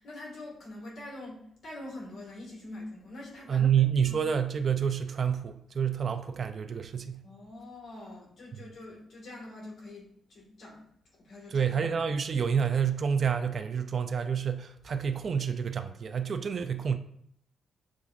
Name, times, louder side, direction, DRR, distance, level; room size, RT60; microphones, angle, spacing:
voice 1, 0.0-3.7 4.1-4.2 7.2-10.9 11.2-11.7, left 2 dB, 60° left, 1.7 m, -44 dB
voice 2, 3.5-7.2 11.5-17.0, right 7 dB, 50° right, 0.3 m, -28 dB
7.0 x 2.5 x 2.4 m
cardioid pair, 105°, 0 cm